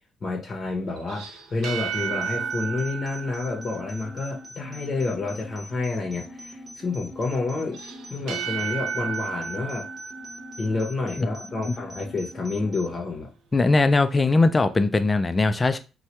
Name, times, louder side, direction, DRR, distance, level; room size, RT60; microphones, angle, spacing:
voice 1, 0.2-7.8 8.1-9.9 10.6-13.3, left 3 dB, 45° left, 0.7 m, -29 dB
sound 1, 1.0-4.5 7.7-11.3, right 6 dB, 85° right, 0.5 m, -33 dB
sound 2, 1.9-12.9, equal, 40° right, 0.9 m, -43 dB
voice 2, 13.5-15.8, left 3 dB, 25° left, 0.3 m, -20 dB
3.2 x 2.2 x 2.9 m
cardioid pair, 90°, 0 cm